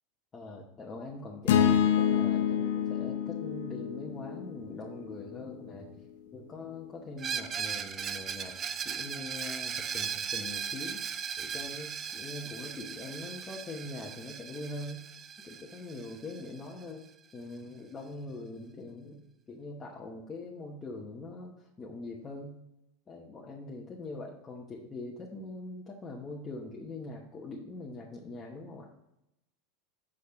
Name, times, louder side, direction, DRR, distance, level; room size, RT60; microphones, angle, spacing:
voice 1, 0.3-6.0 6.3-8.6 8.8-11.0 11.4-15.1 15.4-22.6 23.1-28.9, left 2 dB, 20° left, -3 dB, 1.1 m, -43 dB
sound 1, 1.5-5.7, left 9 dB, 80° left, 0.6 m, -28 dB
Screech, 7.2-16.8, right 7 dB, 30° right, 0.5 m, -38 dB
6.5 x 5.0 x 5.8 m, 0.86 s
supercardioid pair, 125°, 0 cm